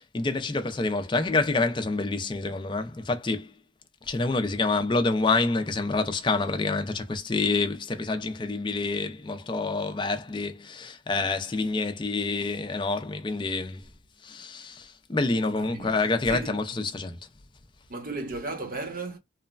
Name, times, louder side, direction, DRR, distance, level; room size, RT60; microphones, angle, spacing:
voice 1, 0.0-3.5 4.0-13.9 14.2-17.2, left 3 dB, 25° left, 0.4 m, -27 dB
voice 2, 15.4-16.0 16.3-16.6 17.9-19.2, right 3 dB, 45° right, 0.8 m, -35 dB
3.1 x 2.1 x 2.3 m
head